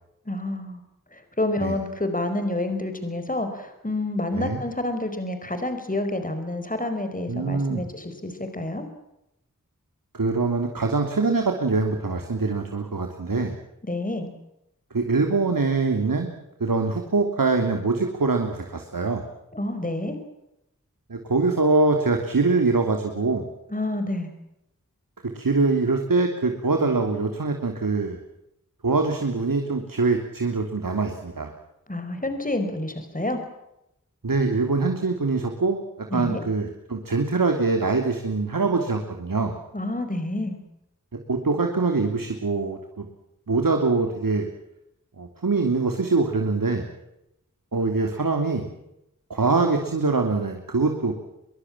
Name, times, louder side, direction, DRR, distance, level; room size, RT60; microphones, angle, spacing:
voice 1, 0.3-0.8 1.1-8.8 13.8-14.3 19.5-20.2 23.7-24.3 31.9-33.4 36.1-36.4 39.7-40.6, left 1 dB, 25° left, 7 dB, 4.7 m, -28 dB
voice 2, 7.3-7.9 10.1-13.6 14.9-16.3 16.6-19.2 21.1-23.5 25.3-28.2 28.8-31.5 34.2-35.8 36.1-39.5 41.3-43.0 43.5-44.5 45.2-46.9 47.7-48.7 49.3-51.2, right 3 dB, 85° right, 4 dB, 3.1 m, -23 dB
24.0 x 23.0 x 7.4 m, 0.85 s
wide cardioid pair, 55°, 33 cm